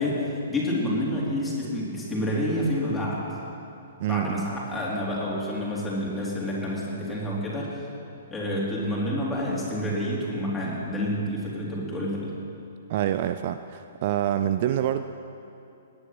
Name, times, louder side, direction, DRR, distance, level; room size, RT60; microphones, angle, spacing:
voice 1, 0.0-3.2 4.1-7.7 8.3-12.3, left 1 dB, 10° left, -6 dB, 3.6 m, -28 dB
voice 2, 4.0-4.5 12.9-15.0, right 11 dB, 40° right, 10 dB, 0.4 m, -26 dB
18.0 x 10.5 x 6.1 m, 2.7 s
figure-of-eight pair, 115°, 0 cm